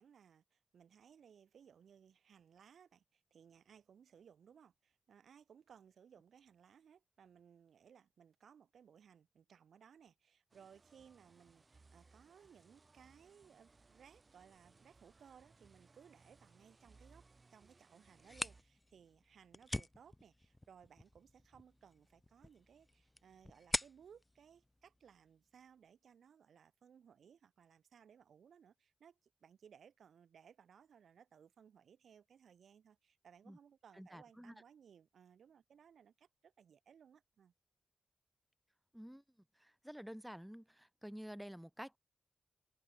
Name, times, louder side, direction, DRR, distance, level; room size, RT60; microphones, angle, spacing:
voice 1, 0.0-37.5, right 7 dB, 80° right, 2.6 m, -63 dB
sound 1, 10.5-18.6, right 3 dB, 40° right, 3.5 m, -66 dB
sound 2, 18.1-25.6, left 1 dB, 15° left, 0.4 m, -46 dB
voice 2, 33.9-34.5 38.9-39.2 39.5-42.0, equal, 5° right, 5.9 m, -50 dB
open air
cardioid pair, 60°, 0 cm